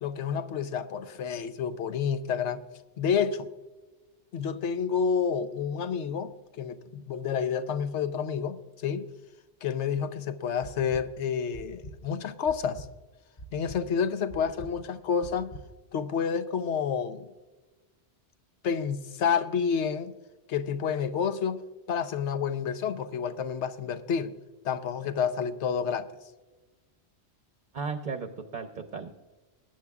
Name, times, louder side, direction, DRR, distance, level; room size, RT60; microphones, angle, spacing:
voice 1, 0.0-2.6 3.0-3.5 4.3-9.1 9.6-12.9 13.5-15.5 15.9-17.3 18.6-20.1 20.5-21.6 21.9-24.3 24.6-26.1, left 7 dB, 90° left, 1.0 m, -29 dB
sound 1, 10.6-11.0 11.5-12.0 12.5-12.9 13.4-13.8 14.3-14.7 15.2-15.6, right 1 dB, 25° left, 0.5 m, -43 dB
voice 2, 27.7-29.1, right 5 dB, 45° right, 0.8 m, -35 dB
21.5 x 9.3 x 2.4 m
omnidirectional pair, 1.2 m